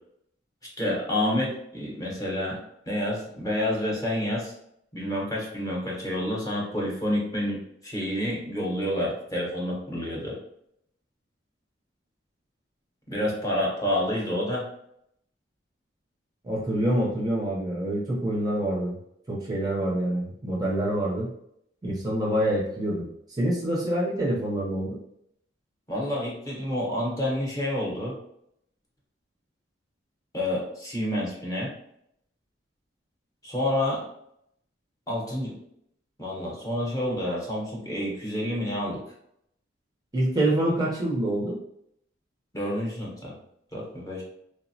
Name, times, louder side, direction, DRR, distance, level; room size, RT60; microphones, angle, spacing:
voice 1, 0.8-4.5 4.9-10.4 13.1-14.7 25.9-28.2 30.3-31.7 33.4-34.0 35.1-35.6 36.2-39.0 42.5-43.3 43.7-44.2, left 1 dB, 20° left, -3 dB, 0.8 m, -29 dB
voice 2, 16.4-18.9 19.3-21.3 21.8-23.1 23.4-25.0 40.1-41.6, right 1 dB, 20° right, -4 dB, 0.5 m, -26 dB
3.3 x 2.0 x 2.6 m, 0.74 s
head